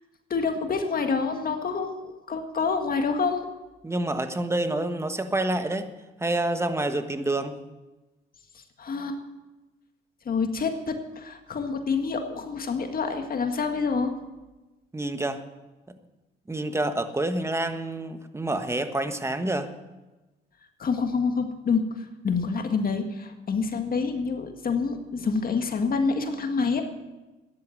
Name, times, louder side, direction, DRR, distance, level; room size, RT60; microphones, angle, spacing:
voice 1, 0.3-3.5 8.8-9.2 10.3-14.1 20.8-21.8 22.2-26.8, left 5 dB, 45° left, 5 dB, 1.9 m, -27 dB
voice 2, 3.8-5.9 6.2-7.6 14.9-15.4 16.5-19.7, right 2 dB, 15° right, 8 dB, 1.4 m, -28 dB
13.5 x 10.5 x 7.9 m, 1.1 s
cardioid pair, 90°, 20 cm